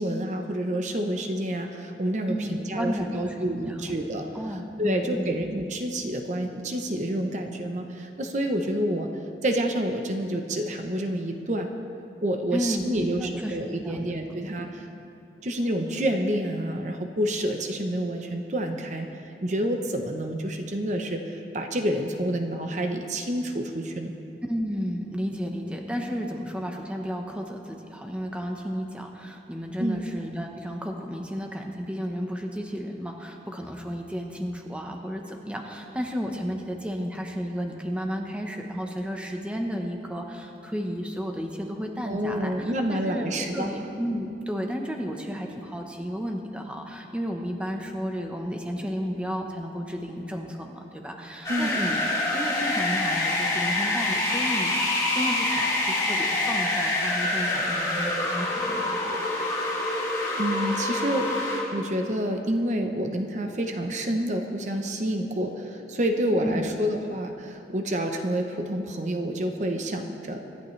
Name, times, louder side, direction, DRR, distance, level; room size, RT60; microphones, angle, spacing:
voice 1, 0.0-9.1 9.4-11.7 12.2-14.9 15.4-24.1 29.8-30.0 42.0-43.7 51.5-51.7 60.4-70.5, right 1 dB, 40° right, 4 dB, 0.8 m, -28 dB
voice 2, 2.3-3.9 4.3-5.4 12.5-13.6 13.8-14.1 14.6-14.9 24.5-43.3 43.5-52.0 52.3-58.9 66.4-66.6, equal, 5° right, 2 dB, 1.0 m, -33 dB
sound 1, 51.4-61.6, left 2 dB, 20° left, 2.9 m, -26 dB
25.0 x 11.5 x 3.3 m, 2.6 s
head